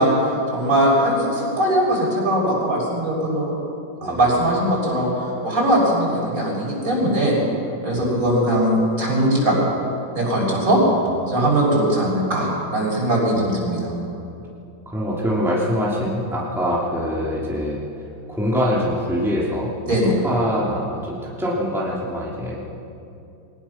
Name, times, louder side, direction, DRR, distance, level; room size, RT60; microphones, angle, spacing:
voice 1, 0.0-3.5 4.0-7.4 7.8-9.6 10.1-10.8 11.3-13.9 19.9-20.1, right 1 dB, 45° right, -3 dB, 6.5 m, -20 dB
voice 2, 10.5-11.1 13.3-14.2 14.8-17.8 18.3-19.7 20.0-22.6, equal, ahead, -6 dB, 3.1 m, -25 dB
23.5 x 19.5 x 6.0 m, 2.7 s
omnidirectional pair, 2.1 m